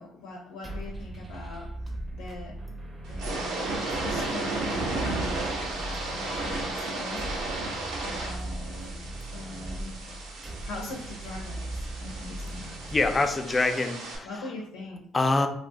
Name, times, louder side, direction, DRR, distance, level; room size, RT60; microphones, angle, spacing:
voice 1, 0.0-2.5 3.1-7.6 8.0-8.9 9.3-10.0 10.6-12.7 14.2-15.0, left 2 dB, 85° left, 0 dB, 0.5 m, -42 dB
sound 1, 0.6-13.7, right 1 dB, 30° right, 0.7 m, -39 dB
sound 2, 3.0-14.2, right 2 dB, 80° right, 0.7 m, -34 dB
voice 2, 12.9-14.4 15.1-15.5, left 3 dB, 30° left, 6 dB, 0.4 m, -25 dB
2.5 x 2.0 x 3.6 m, 0.70 s
supercardioid pair, 65°, 0 cm